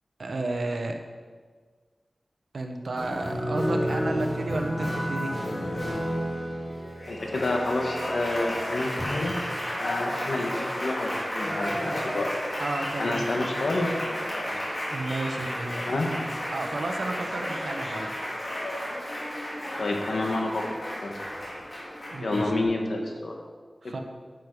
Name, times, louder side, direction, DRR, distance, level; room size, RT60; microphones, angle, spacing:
voice 1, 0.2-1.0 2.5-5.3 12.6-13.5 14.9-18.1 22.1-22.5 23.8-24.0, right 2 dB, 80° right, 4 dB, 1.2 m, -32 dB
Applause, 3.0-22.6, equal, 35° left, 3.5 m, -32 dB
voice 2, 7.1-9.4 9.7-12.3 12.9-14.6 15.8-16.1 19.8-20.7 21.0-21.2 22.2-23.4 23.8-24.0, left 2 dB, 80° left, 2 dB, 1.6 m, -29 dB
10.0 x 9.4 x 4.9 m, 1.5 s
wide cardioid pair, 95°, 0 cm